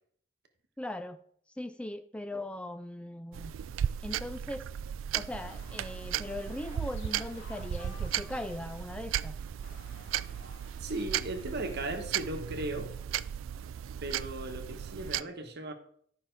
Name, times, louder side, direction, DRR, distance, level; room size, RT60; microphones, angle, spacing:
voice 1, 0.8-1.2 1.6-3.6 4.0-4.6 5.1-9.4, left 1 dB, 5° left, 0.3 m, -39 dB
sound 1, 3.3-15.2, right 10 dB, 70° right, 0.3 m, -36 dB
sound 2, 5.3-8.9 9.6-11.9, left 2 dB, 65° left, 1.5 m, -53 dB
voice 2, 10.8-12.9 14.0-15.7, right 2 dB, 55° right, 1.1 m, -37 dB
11.0 x 5.6 x 4.6 m
head